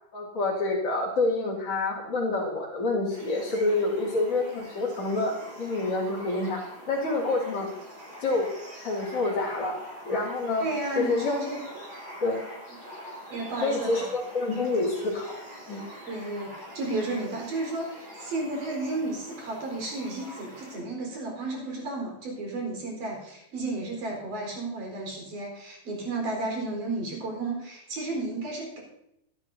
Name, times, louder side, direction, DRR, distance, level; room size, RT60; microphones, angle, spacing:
voice 1, 0.1-6.6 6.9-7.7 8.2-8.5 8.8-9.8 10.1-10.7 11.0-11.4 12.2-12.4 13.6-15.3 15.7-15.8, left 2 dB, 40° left, -9 dB, 3.6 m, -27 dB
sound 1, 3.1-20.8, equal, 30° right, 7.6 m, -44 dB
voice 2, 10.6-11.6 13.3-14.1 16.1-28.8, right 2 dB, 60° right, 0 dB, 5.9 m, -33 dB
24.5 x 11.0 x 2.8 m, 0.81 s
omnidirectional pair, 4.1 m